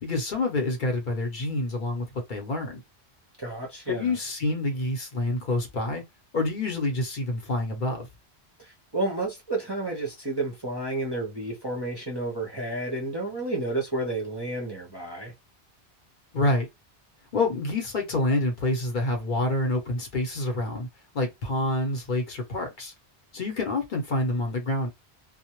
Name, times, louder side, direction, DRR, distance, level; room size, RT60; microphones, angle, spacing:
voice 1, 0.0-2.8 3.9-6.0 6.3-8.1 16.3-16.7 17.3-20.9 21.1-22.9 23.3-24.9, left 2 dB, 55° left, 0.7 m, -27 dB
voice 2, 3.4-4.2 8.6-15.3, right 2 dB, 30° right, 0.5 m, -31 dB
2.1 x 2.0 x 2.9 m
omnidirectional pair, 1.1 m